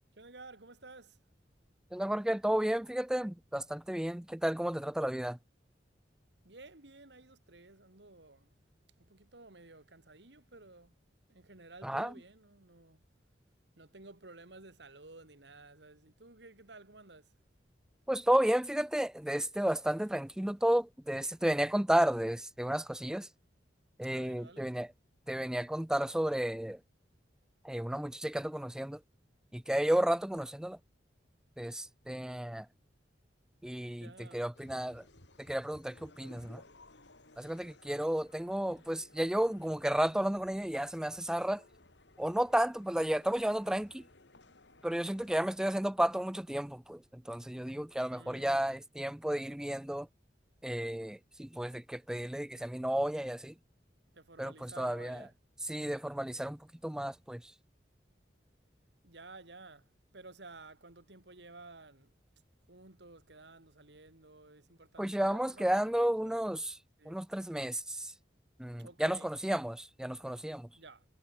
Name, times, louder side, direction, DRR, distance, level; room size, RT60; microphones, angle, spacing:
voice 1, 0.2-1.2 6.4-8.6 9.0-11.0 11.3-13.0 13.7-17.3 24.1-24.8 34.0-34.4 48.1-48.8 54.1-55.3 59.0-62.1 62.7-66.4 67.0-67.2 68.8-69.3 70.7-71.0, right 3 dB, 75° right, 2.9 m, -54 dB
voice 2, 1.9-5.4 11.8-12.1 18.1-23.3 24.0-24.9 25.3-26.8 27.6-29.0 29.5-30.8 31.6-32.7 33.6-35.0 35.5-36.6 37.4-41.6 42.2-44.0 44.8-50.1 50.6-53.5 54.4-55.2 55.7-57.4 65.0-66.8 67.1-68.1 68.6-70.7, right 1 dB, 5° right, 0.3 m, -32 dB
sound 1, 34.5-45.4, left 2 dB, 85° left, 4.0 m, -60 dB
head